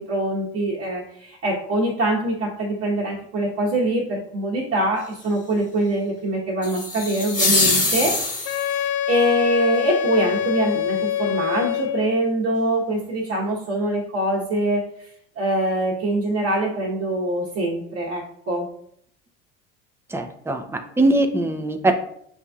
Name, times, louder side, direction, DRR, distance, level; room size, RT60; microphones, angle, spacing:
voice 1, 0.0-8.2 8.4-15.1 15.4-18.7, right 1 dB, 45° right, -5 dB, 1.0 m, -24 dB
sound 1, 6.6-8.8, left 2 dB, 25° left, 1.3 m, -23 dB
Wind instrument woodwind instrument, 8.5-12.2, left 10 dB, 70° left, 0.5 m, -25 dB
voice 2, 20.1-21.9, right 2 dB, 5° right, 5 dB, 0.5 m, -21 dB
6.9 x 2.7 x 2.3 m, 0.68 s
hypercardioid pair, 75°, 34 cm